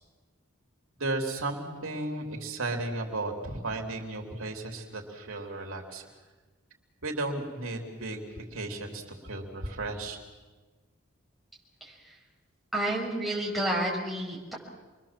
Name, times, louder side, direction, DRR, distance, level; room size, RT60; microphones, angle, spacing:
voice 1, 1.0-6.0 7.0-10.2, right 2 dB, 80° right, 2 dB, 3.4 m, -34 dB
voice 2, 12.7-14.5, right 1 dB, ahead, -5 dB, 6.4 m, -30 dB
28.0 x 22.5 x 7.5 m, 1.3 s
head